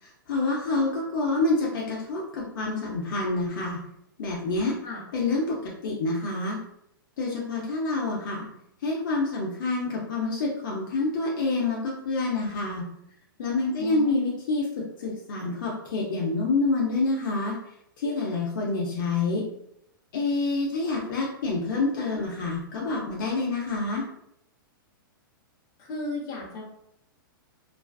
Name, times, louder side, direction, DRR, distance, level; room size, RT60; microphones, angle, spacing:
voice 1, 0.0-3.8 4.2-4.8 5.1-6.6 7.2-8.5 8.8-12.8 13.4-17.6 18.0-19.4 20.1-24.0, left 3 dB, 65° left, -3 dB, 0.6 m, -27 dB
voice 2, 13.8-14.1 25.8-26.6, left 3 dB, 30° left, -3 dB, 0.8 m, -34 dB
2.4 x 2.2 x 2.3 m, 0.74 s
hypercardioid pair, 140°, 12 cm